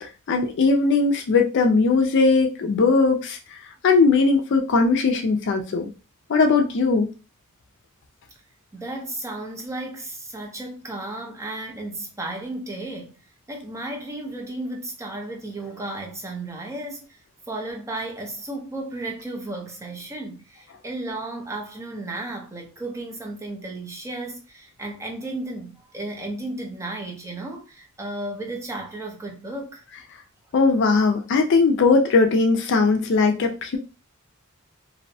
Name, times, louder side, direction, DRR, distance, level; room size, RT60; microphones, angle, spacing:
voice 1, 0.0-3.4 3.8-5.9 6.3-7.1 30.5-33.8, left 4 dB, 55° left, 0.4 m, -19 dB
voice 2, 8.7-13.1 13.5-17.2 17.5-29.8, right 2 dB, 15° right, 0.5 m, -34 dB
2.6 x 2.1 x 2.6 m
head